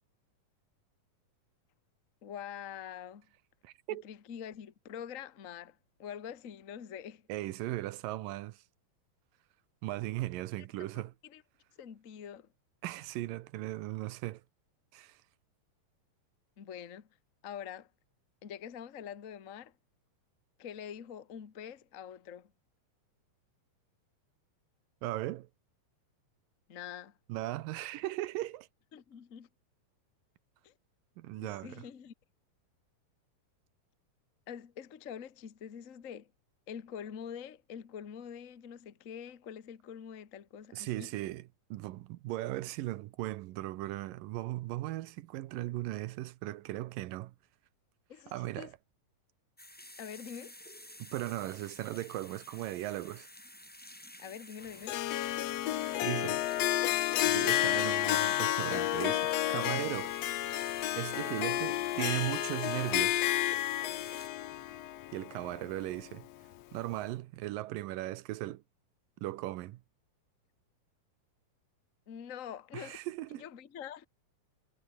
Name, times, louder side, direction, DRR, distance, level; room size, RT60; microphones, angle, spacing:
voice 1, 2.2-3.3 3.9-7.3 10.6-11.4 11.8-12.5 16.6-17.1 17.4-17.9 18.4-19.7 20.6-22.5 26.7-27.1 28.9-29.5 30.6-30.7 31.4-32.1 34.5-36.3 36.7-41.1 48.1-48.7 50.0-50.5 54.2-55.0 72.1-73.0 73.3-74.1, left 8 dB, 55° left, 0.8 m, -45 dB
voice 2, 3.6-4.0 7.3-8.6 9.8-11.1 12.8-14.4 14.9-15.2 25.0-25.5 27.3-28.7 31.2-31.9 40.7-47.4 48.3-48.7 51.0-53.3 56.0-56.4 57.2-60.1 60.4-60.5 60.9-63.3 65.1-66.3 66.7-68.6 69.2-69.8 72.7-73.4, right 16 dB, 80° right, 2.5 m, -37 dB
sound 1, 49.6-64.3, left 1 dB, 5° left, 0.9 m, -52 dB
Harp, 54.9-66.1, left 14 dB, 80° left, 1.5 m, -31 dB
omnidirectional pair, 4.0 m